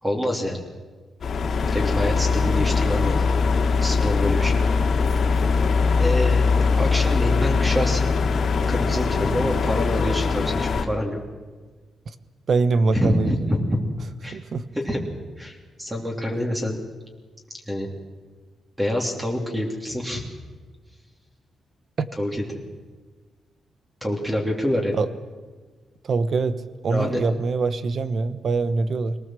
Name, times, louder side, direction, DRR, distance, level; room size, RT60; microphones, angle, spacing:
voice 1, 0.0-0.6 1.7-3.2 3.8-4.6 6.0-8.1 8.7-11.2 12.9-13.8 14.2-14.4 14.7-15.0 15.4-16.8 17.7-17.9 18.8-20.2 22.2-22.4 24.0-24.9 26.9-27.2, equal, 10° right, 1 dB, 3.0 m, -26 dB
sound 1, 1.2-10.9, left 4 dB, 50° left, 2.3 m, -21 dB
voice 2, 12.5-13.3 14.3-14.6 22.0-22.1 25.0-25.1 26.0-29.2, right 4 dB, 45° right, 13 dB, 1.1 m, -23 dB
24.5 x 18.5 x 7.6 m, 1.4 s
cardioid pair, 140°, 0 cm